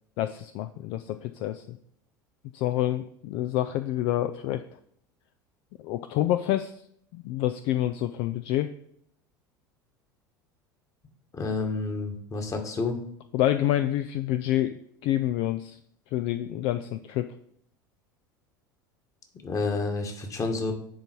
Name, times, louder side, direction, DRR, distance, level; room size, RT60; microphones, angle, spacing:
voice 1, 0.2-1.8 2.5-4.8 5.8-6.8 7.1-8.7 13.3-15.8 16.1-17.3, left 13 dB, 55° left, 10 dB, 0.4 m, -28 dB
voice 2, 11.3-13.0 19.4-20.7, left 3 dB, 30° left, 4 dB, 1.7 m, -29 dB
10.5 x 4.0 x 4.5 m, 0.69 s
figure-of-eight pair, 75°, 11 cm